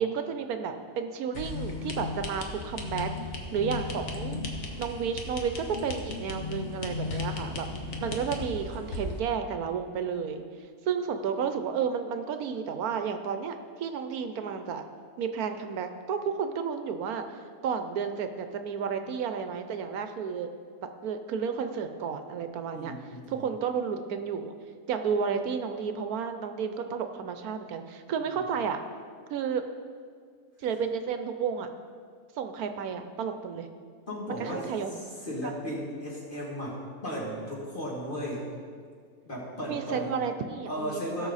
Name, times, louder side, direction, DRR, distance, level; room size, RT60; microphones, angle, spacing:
voice 1, 0.0-3.1 3.5-4.4 4.8-7.7 8.0-10.4 10.9-14.8 15.2-17.2 17.6-20.5 20.8-22.9 23.3-24.5 24.9-28.8 29.3-29.6 30.6-31.7 32.4-33.7 34.4-35.0 39.7-41.3, right 6 dB, 75° right, 8 dB, 1.1 m, -32 dB
sound 1, 1.3-9.2, left 3 dB, 50° left, 1.4 m, -36 dB
voice 2, 7.7-8.2 22.7-23.4 28.2-28.4 34.1-34.7 35.0-38.5 39.2-40.2 40.7-41.3, equal, 35° left, -5 dB, 2.5 m, -36 dB
17.5 x 6.4 x 4.1 m, 2.1 s
omnidirectional pair, 1.6 m